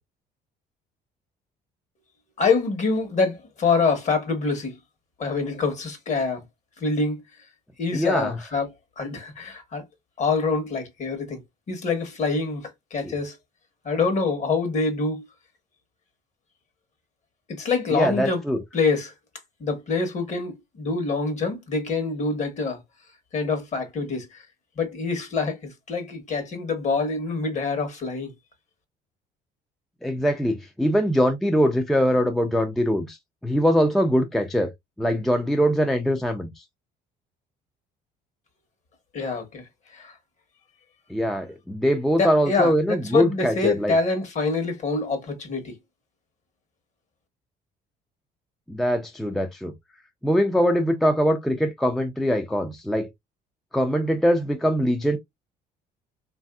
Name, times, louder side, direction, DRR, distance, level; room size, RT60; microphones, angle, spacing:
voice 1, 2.4-4.7 5.2-6.4 6.8-7.2 7.8-8.7 9.0-9.8 10.2-11.4 11.7-13.4 13.8-15.2 17.6-18.4 18.7-19.1 19.6-22.8 23.3-24.4 24.8-28.3 39.1-39.6 39.9-40.2 42.2-45.8, left 4 dB, 45° left, 1.1 m, -25 dB
voice 2, 7.9-8.3 13.0-13.1 17.9-18.6 30.0-33.2 33.4-34.7 35.0-36.5 41.1-44.0 48.7-49.7 50.2-53.1 53.7-55.2, equal, ahead, 0.4 m, -22 dB
3.2 x 2.6 x 2.2 m
cardioid pair, 110°, 17 cm